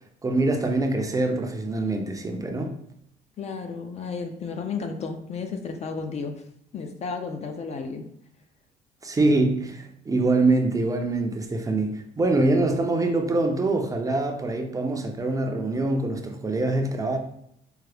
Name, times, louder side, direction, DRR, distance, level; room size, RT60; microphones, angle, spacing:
voice 1, 0.2-2.8 9.0-17.2, right 2 dB, 20° right, 3 dB, 0.5 m, -24 dB
voice 2, 3.4-6.4 6.7-8.1, left 5 dB, 40° left, 6 dB, 0.5 m, -33 dB
4.7 x 2.0 x 3.3 m, 0.73 s
cardioid pair, 110°, 17 cm